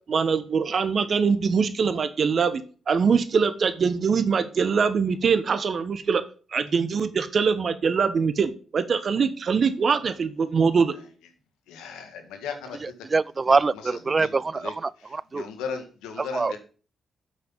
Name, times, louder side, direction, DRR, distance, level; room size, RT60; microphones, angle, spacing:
voice 1, 0.1-6.2 6.5-10.9, right 5 dB, 60° right, 1.2 m, -23 dB
voice 2, 11.7-12.8 14.2-14.3 14.6-14.7 15.3-16.6, left 6 dB, 85° left, 1.7 m, -35 dB
voice 3, 12.8-15.4 16.2-16.5, right 4 dB, 40° right, 0.4 m, -25 dB
8.0 x 6.1 x 7.3 m
supercardioid pair, 45°, 0 cm